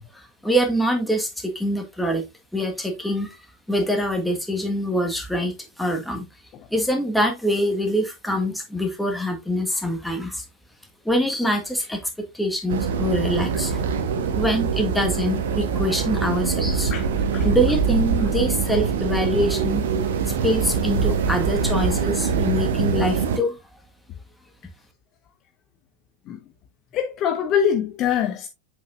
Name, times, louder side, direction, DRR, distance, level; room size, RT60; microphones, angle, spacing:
voice 1, 0.1-2.2 2.5-3.4 3.7-6.2 6.7-10.4 11.0-12.0 12.3-13.8 14.3-16.9 17.4-19.8 20.4-23.6, equal, 5° left, 1.6 m, -24 dB
sound 1, 12.7-23.4, right 6 dB, 60° right, 1.0 m, -24 dB
voice 2, 16.9-17.5 26.3-26.4 26.9-28.5, left 8 dB, 35° left, 0.7 m, -24 dB
7.6 x 5.3 x 2.6 m
figure-of-eight pair, 90°, 0 cm